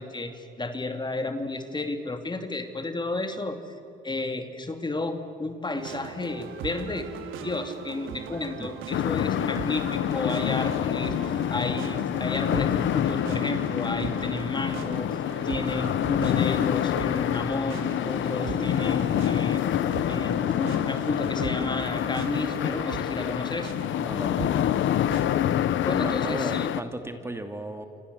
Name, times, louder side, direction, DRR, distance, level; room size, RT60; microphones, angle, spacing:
voice 1, 0.0-3.7 4.0-7.1 7.4-15.2 15.4-19.6 20.1-23.7 25.9-26.7, left 2 dB, 20° left, 7 dB, 2.6 m, -32 dB
sound 1, 5.7-25.6, right 6 dB, 85° right, 3.1 m, -39 dB
sound 2, 8.9-26.8, left 11 dB, 75° left, 1.0 m, -27 dB
voice 2, 24.0-24.7 26.0-27.8, right 1 dB, 15° right, 6 dB, 2.5 m, -35 dB
28.5 x 26.0 x 8.2 m, 2.7 s
cardioid pair, 90°, 20 cm